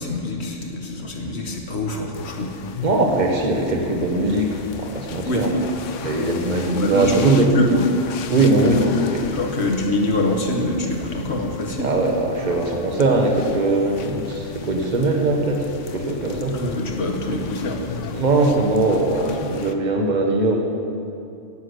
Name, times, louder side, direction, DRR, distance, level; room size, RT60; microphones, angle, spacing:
voice 1, 0.0-2.5 5.3-5.5 6.5-7.9 9.3-12.0 16.5-18.1, left 2 dB, 55° left, 2 dB, 1.9 m, -25 dB
sound 1, 2.1-19.7, left 6 dB, 75° left, 1.1 m, -36 dB
voice 2, 2.8-5.6 6.0-7.5 8.3-9.4 11.8-15.7 15.9-16.6 18.1-20.6, right 2 dB, 35° right, 1 dB, 1.6 m, -20 dB
17.0 x 7.5 x 8.1 m, 2.5 s
omnidirectional pair, 1.3 m